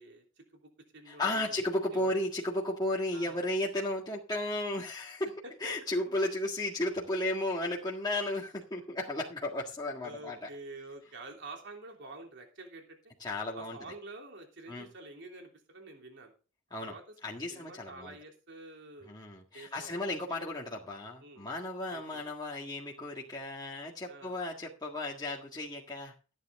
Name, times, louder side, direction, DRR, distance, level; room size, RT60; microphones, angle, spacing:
voice 1, 0.0-1.6 1.9-2.1 3.1-3.5 5.4-5.5 10.0-13.0 13.5-16.3 16.8-17.1 17.5-19.1 19.5-20.5 21.2-21.4 21.9-22.2 24.1-24.4, right 2 dB, 60° right, 2 dB, 3.3 m, -48 dB
voice 2, 1.1-5.3 5.6-10.5 13.2-13.8 14.7-14.9 16.7-16.9 17.2-18.1 19.1-26.1, left 1 dB, 20° left, -2 dB, 1.8 m, -34 dB
14.5 x 9.7 x 3.7 m, 0.35 s
head